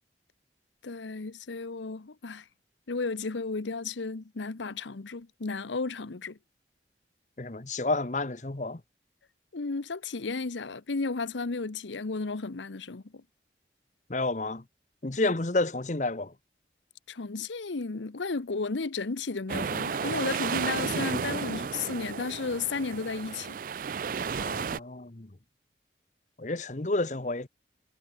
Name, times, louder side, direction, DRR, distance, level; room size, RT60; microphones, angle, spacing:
voice 1, 0.8-2.5 2.9-6.4 9.5-13.2 17.1-23.6, left 4 dB, 85° left, 0.8 m, -33 dB
voice 2, 7.4-8.8 14.1-14.6 15.0-16.3 24.4-25.3 26.4-27.5, left 2 dB, 40° left, 1.0 m, -30 dB
sound 1, 19.5-24.8, right 6 dB, 50° right, 0.4 m, -33 dB
head